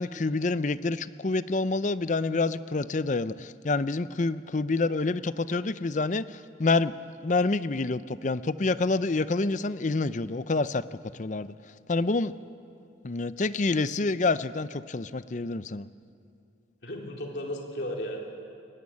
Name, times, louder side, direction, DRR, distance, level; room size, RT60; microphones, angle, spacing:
voice 1, 0.0-6.9 7.2-10.8 11.2-11.5 11.9-12.3 13.0-15.9, left 3 dB, 40° left, 14 dB, 0.6 m, -27 dB
voice 2, 16.8-18.2, left 1 dB, 65° left, 0 dB, 3.7 m, -34 dB
22.0 x 20.5 x 8.5 m, 2.5 s
head